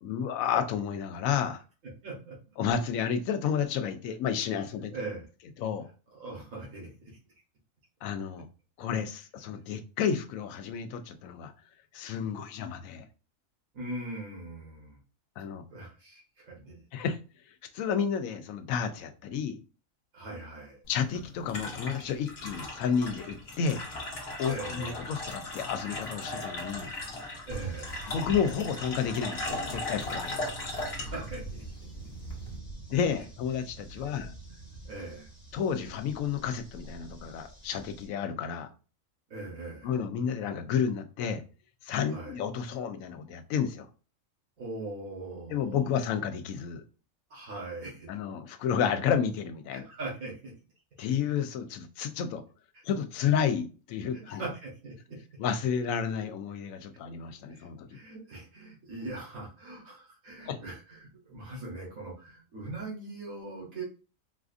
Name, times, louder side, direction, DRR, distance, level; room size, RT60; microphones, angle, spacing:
voice 1, 0.0-1.6 2.6-4.9 5.6-5.9 8.0-8.5 8.8-11.5 11.9-13.1 15.4-15.6 16.9-17.2 17.7-19.6 20.9-23.8 24.4-26.9 28.1-30.5 32.9-34.3 35.5-38.7 39.8-41.4 41.8-43.9 45.5-46.8 48.1-49.9 51.0-52.4 52.8-54.4 55.4-58.0 60.5-60.6, left 7 dB, 80° left, 8 dB, 1.0 m, -31 dB
voice 2, 2.0-2.4 4.9-5.2 6.1-7.2 13.7-15.0 15.7-16.8 20.1-20.8 24.4-25.1 27.4-28.1 30.2-30.4 31.0-31.6 34.8-35.3 39.3-39.9 42.1-42.4 44.6-45.8 47.3-48.2 49.7-50.5 54.1-55.2 57.5-63.8, right 2 dB, 85° right, -4 dB, 1.5 m, -41 dB
sound 1, 20.8-32.6, left 2 dB, 50° left, 1.2 m, -38 dB
sound 2, 27.5-38.1, right 3 dB, 5° right, 1.4 m, -45 dB
4.1 x 2.4 x 2.5 m, 0.35 s
omnidirectional pair, 1.4 m